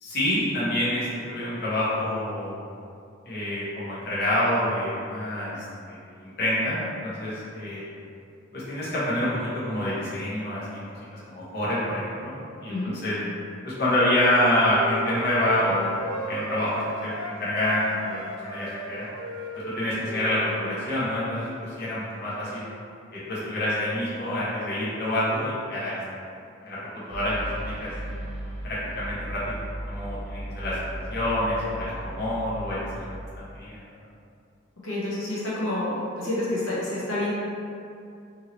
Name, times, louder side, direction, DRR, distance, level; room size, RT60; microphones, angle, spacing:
voice 1, 0.0-2.5 3.2-5.6 5.9-7.8 8.5-10.8 11.3-13.1 13.6-16.7 17.0-19.1 19.8-22.6 23.1-26.0 26.6-26.8 27.1-27.9 28.6-29.4 29.9-30.8 31.1-33.1 33.4-33.8, left 1 dB, 55° left, -10 dB, 0.9 m, -27 dB
Wind instrument woodwind instrument, 14.3-17.3 17.6-20.9, right 1 dB, 80° right, 0.5 m, -36 dB
sound 1, 27.1-33.4, right 1 dB, 20° right, 0.4 m, -36 dB
voice 2, 34.8-37.3, left 1 dB, 85° left, -8 dB, 0.8 m, -28 dB
2.9 x 2.7 x 2.8 m, 2.5 s
head